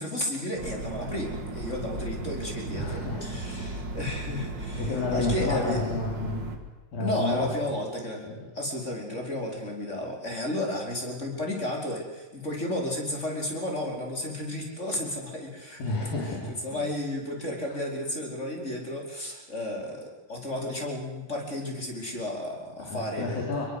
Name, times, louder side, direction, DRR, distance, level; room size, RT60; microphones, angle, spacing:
voice 1, 0.0-5.8 7.0-8.2 8.5-23.5, left 1 dB, 20° left, 1 dB, 5.1 m, -33 dB
sound 1, 0.5-6.6, right 2 dB, 35° right, 3.0 m, -35 dB
voice 2, 2.7-3.8 4.8-6.4 6.9-7.5 8.2-8.4 15.8-16.8 17.7-17.8 22.8-23.7, left 3 dB, 90° left, -1 dB, 5.8 m, -31 dB
26.0 x 22.5 x 8.1 m, 1.2 s
omnidirectional pair, 3.9 m